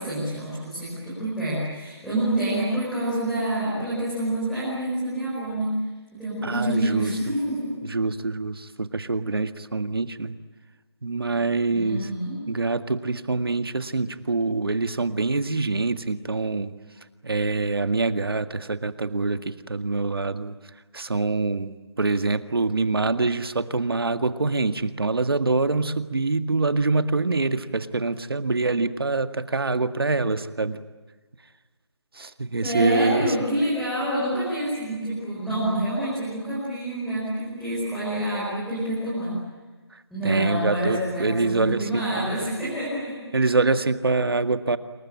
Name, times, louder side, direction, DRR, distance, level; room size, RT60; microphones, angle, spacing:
voice 1, 0.0-5.8 6.1-7.7 11.7-12.4 32.6-39.4 40.1-43.2, right 1 dB, ahead, -13 dB, 5.5 m, -27 dB
voice 2, 6.4-7.1 7.8-10.4 11.0-12.1 12.5-16.7 17.2-20.5 20.9-30.8 32.2-33.3 40.2-42.5 43.3-44.8, right 3 dB, 60° right, 11 dB, 1.9 m, -25 dB
27.5 x 24.0 x 8.9 m, 1.3 s
figure-of-eight pair, 175°, 14 cm